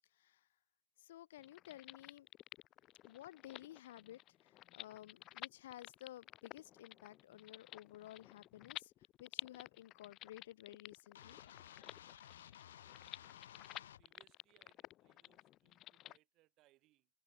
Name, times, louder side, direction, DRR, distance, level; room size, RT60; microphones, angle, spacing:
voice 1, 0.1-0.5 1.0-2.3 3.0-8.9 9.2-11.4, left 13 dB, 50° left, 1.3 m, -54 dB
sound 1, 1.4-16.2, left 15 dB, 20° left, 0.4 m, -53 dB
sound 2, 11.2-14.0, left 10 dB, 70° left, 3.0 m, -56 dB
voice 2, 12.9-17.1, right 18 dB, 25° right, 7.7 m, -75 dB
supercardioid pair, 180°, 0 cm